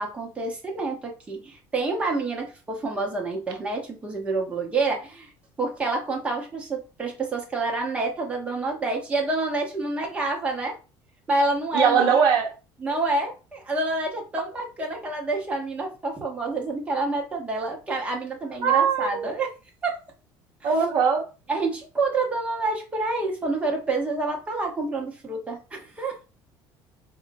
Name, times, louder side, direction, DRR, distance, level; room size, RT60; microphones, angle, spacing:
voice 1, 0.0-5.3 5.6-10.8 11.3-12.2 12.8-19.5 19.8-20.0 20.6-20.7 21.5-26.2, right 3 dB, 15° right, 0.9 m, -28 dB
voice 2, 11.7-12.5 18.6-19.3 20.6-21.2, right 6 dB, 50° right, 0.8 m, -20 dB
4.2 x 2.7 x 2.6 m
cardioid pair, 170°, 9 cm